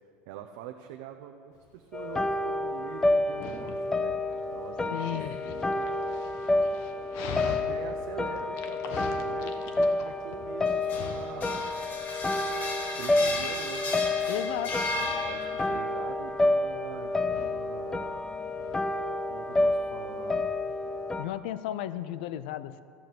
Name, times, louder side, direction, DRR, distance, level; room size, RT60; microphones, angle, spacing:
voice 1, 0.3-5.9 7.4-11.7 13.0-18.2 19.3-20.5, right 10 dB, 75° right, 5 dB, 0.7 m, -45 dB
Dog, 1.6-20.8, left 6 dB, 65° left, 1.1 m, -45 dB
sound 1, 1.9-21.2, left 2 dB, 10° left, 0.5 m, -29 dB
voice 2, 4.9-5.3 14.3-14.8 21.2-22.8, left 12 dB, 85° left, 14 dB, 0.5 m, -34 dB
sound 2, 10.7-15.8, left 2 dB, 35° left, 1.5 m, -35 dB
14.0 x 6.8 x 7.8 m, 2.3 s
supercardioid pair, 140°, 5 cm